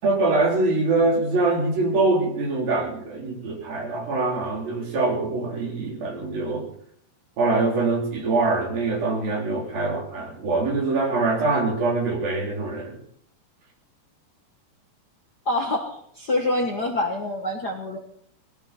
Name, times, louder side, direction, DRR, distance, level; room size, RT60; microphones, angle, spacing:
voice 1, 0.0-6.7 7.4-13.0, right 3 dB, 85° right, 0 dB, 5.7 m, -24 dB
voice 2, 15.4-18.0, left 1 dB, 45° left, 2 dB, 1.4 m, -26 dB
20.0 x 16.5 x 4.3 m, 0.67 s
omnidirectional pair, 4.0 m